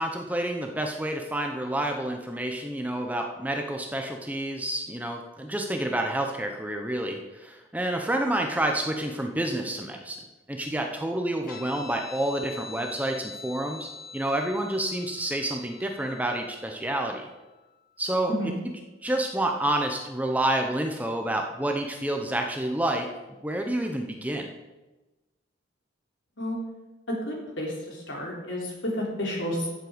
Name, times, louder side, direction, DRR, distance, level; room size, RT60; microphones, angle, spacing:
voice 1, 0.0-10.2 10.5-17.3 18.0-18.3 19.0-23.1 23.4-24.5, right 1 dB, 10° right, 3 dB, 0.8 m, -29 dB
Guitar, 11.5-18.4, left 5 dB, 45° left, 2.1 m, -45 dB
voice 2, 27.1-29.7, left 1 dB, 70° left, -2 dB, 3.8 m, -31 dB
14.0 x 7.5 x 5.2 m, 1.1 s
head